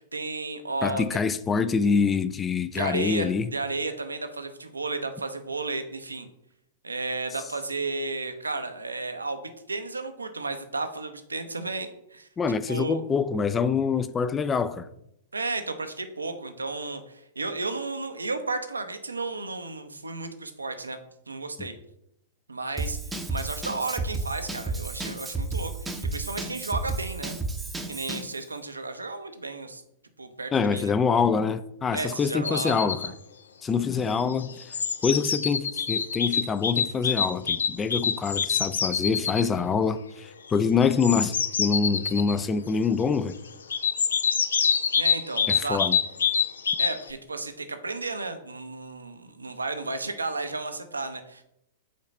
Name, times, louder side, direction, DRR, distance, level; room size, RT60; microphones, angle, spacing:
voice 1, 0.0-1.0 2.7-6.3 6.8-9.4 9.7-12.3 12.7-13.0 15.3-21.0 21.3-21.8 22.5-23.0 23.3-27.4 27.9-29.8 30.2-30.9 31.9-33.1 45.0-45.8 46.8-51.4, right 3 dB, 85° right, 0.7 m, -33 dB
voice 2, 0.8-3.5 12.4-14.9 21.6-21.7 30.5-33.1 33.6-34.6 35.0-43.3 45.5-46.0, left 5 dB, 20° left, 0.4 m, -25 dB
Drum kit / Drum, 22.8-28.3, right 3 dB, 10° right, 0.7 m, -32 dB
sound 1, 32.4-33.1 34.2-39.5 40.8-42.4 43.7-47.1, left 7 dB, 75° left, 0.5 m, -26 dB
5.1 x 4.0 x 5.3 m
figure-of-eight pair, 105°, 0 cm